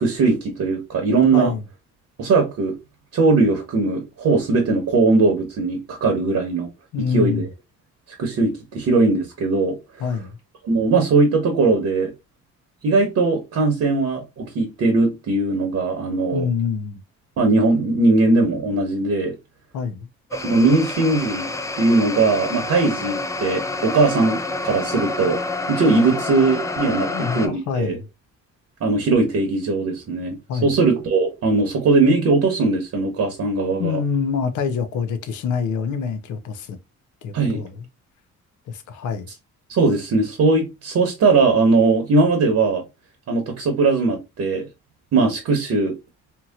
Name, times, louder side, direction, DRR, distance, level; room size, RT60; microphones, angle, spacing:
voice 1, 0.0-1.5 2.2-2.8 3.1-6.7 7.1-7.4 8.2-9.8 10.6-12.1 12.8-16.5 17.4-19.3 20.4-21.5 21.8-25.4 25.7-28.0 28.8-30.4 30.6-34.0 37.3-37.6 39.7-42.8 43.3-44.7 45.1-46.0, right 3 dB, 60° right, 1.0 m, -19 dB
voice 2, 1.3-1.6 6.9-7.5 10.0-10.3 16.3-17.0 19.7-20.1 27.1-28.1 30.5-30.7 33.8-36.8 37.2-37.8 38.7-39.3, left 6 dB, 75° left, 0.6 m, -26 dB
sound 1, 20.3-27.5, left 3 dB, 10° left, 0.3 m, -28 dB
2.9 x 2.8 x 2.3 m
cardioid pair, 90°, 30 cm